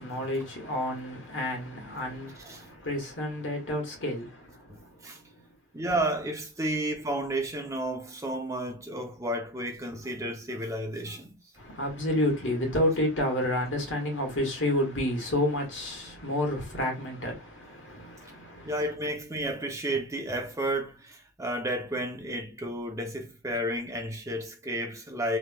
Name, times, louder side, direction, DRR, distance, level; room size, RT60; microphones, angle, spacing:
voice 1, 0.0-5.5 11.6-18.7, left 1 dB, 80° left, 1.6 m, -30 dB
voice 2, 4.7-5.2 5.7-11.4 18.7-25.4, right 1 dB, 15° right, 0.7 m, -32 dB
3.4 x 3.0 x 2.3 m
head